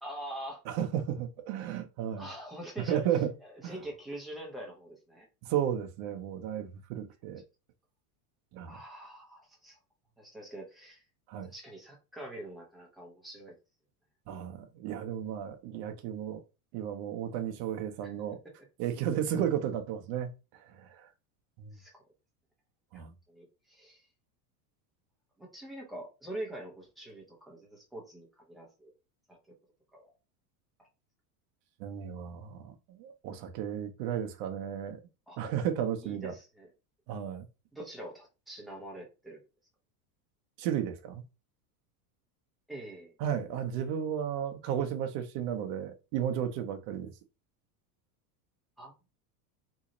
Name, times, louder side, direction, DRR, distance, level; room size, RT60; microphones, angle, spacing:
voice 1, 0.0-0.6 2.2-3.0 3.4-5.3 8.6-9.8 10.2-11.0 11.4-13.5 18.0-18.1 21.7-22.0 22.9-24.0 25.4-28.9 29.3-29.5 29.9-30.1 30.8-30.9 35.3-35.4 36.0-36.7 37.7-39.4 42.7-43.2 48.8-48.9, right 1 dB, ahead, 0.6 m, -44 dB
voice 2, 0.7-2.3 2.8-3.3 3.6-3.8 5.4-7.4 8.5-8.8 11.3-11.5 14.3-16.4 16.7-18.4 18.8-20.3 20.6-21.1 21.6-21.8 22.9-23.1 31.8-35.0 35.4-36.3 37.1-37.5 40.6-41.3 43.2-47.1, right 9 dB, 45° right, 0.7 m, -33 dB
3.0 x 2.7 x 3.7 m
supercardioid pair, 165°, 46 cm